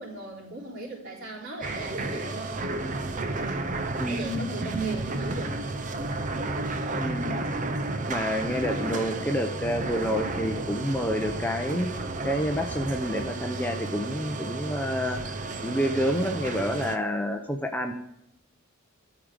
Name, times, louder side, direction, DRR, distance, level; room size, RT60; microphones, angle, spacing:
voice 1, 0.0-2.8 3.2-3.8 4.1-5.6, right 3 dB, 55° right, -5 dB, 4.0 m, -37 dB
sound 1, 1.6-17.0, right 2 dB, 40° right, 0.6 m, -32 dB
voice 2, 4.0-4.5 6.9-7.4 8.1-11.9 12.2-15.3 15.6-17.9, equal, 10° left, 4 dB, 0.6 m, -28 dB
12.5 x 4.8 x 5.1 m, 0.79 s
head